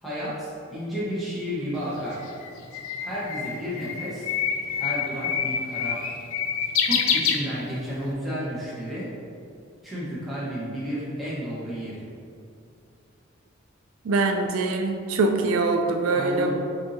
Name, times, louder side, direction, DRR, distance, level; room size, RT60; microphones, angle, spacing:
voice 1, 0.0-2.3 3.0-4.3 4.7-6.2 6.8-9.1 9.8-12.0 16.1-16.5, equal, ahead, -10 dB, 1.2 m, -32 dB
Bird, 1.8-8.0, left 7 dB, 90° left, 0.4 m, -27 dB
voice 2, 14.1-16.5, right 3 dB, 90° right, 4 dB, 0.4 m, -23 dB
7.0 x 2.7 x 2.8 m, 2.5 s
head